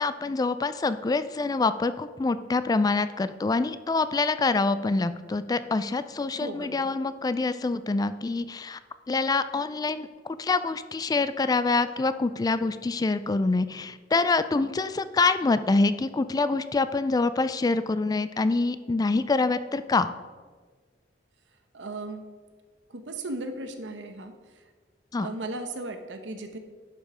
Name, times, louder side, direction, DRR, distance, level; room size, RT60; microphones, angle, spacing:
voice 1, 0.0-8.8 9.1-20.1 25.1-25.3, left 3 dB, 20° left, 13 dB, 0.3 m, -26 dB
voice 2, 6.3-6.9 21.7-22.2 22.9-24.3 25.2-26.6, right 2 dB, 85° right, 7 dB, 1.0 m, -36 dB
11.0 x 5.4 x 5.0 m, 1.4 s
head